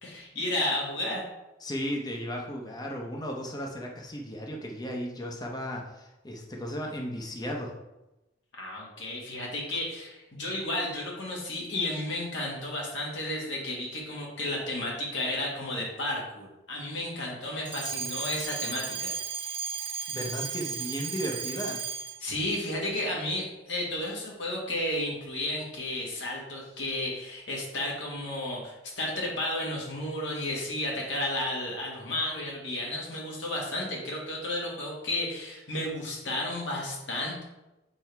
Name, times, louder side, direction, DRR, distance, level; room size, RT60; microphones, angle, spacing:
voice 1, 0.0-1.2 8.5-19.1 22.2-37.4, left 1 dB, 75° left, -3 dB, 1.7 m, -32 dB
voice 2, 1.6-7.7 20.1-21.8, equal, 20° left, 0 dB, 0.9 m, -35 dB
Alarm, 17.6-22.3, right 6 dB, 30° right, 0.5 m, -35 dB
7.6 x 3.4 x 4.6 m, 0.97 s
head